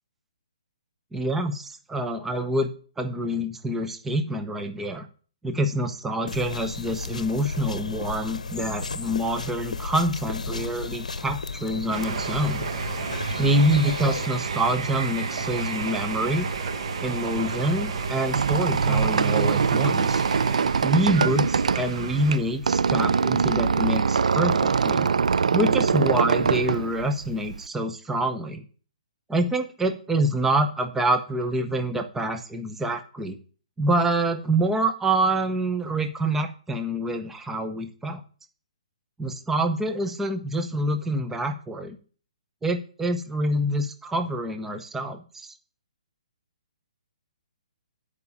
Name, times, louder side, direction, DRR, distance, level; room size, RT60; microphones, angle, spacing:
voice 1, 1.1-2.7 3.0-5.1 5.4-12.7 13.4-16.5 17.0-20.3 20.8-25.1 25.5-28.6 29.3-33.4 33.8-38.2 39.2-42.0 42.6-45.5, right 1 dB, 5° right, 7 dB, 0.8 m, -26 dB
sound 1, 6.3-14.3, left 4 dB, 85° left, 0.7 m, -34 dB
sound 2, 11.9-22.4, right 5 dB, 55° right, 1.2 m, -31 dB
Squeak, 18.0-27.6, right 5 dB, 75° right, 0.4 m, -23 dB
9.4 x 5.0 x 7.0 m, 0.41 s
hypercardioid pair, 140°, 4 cm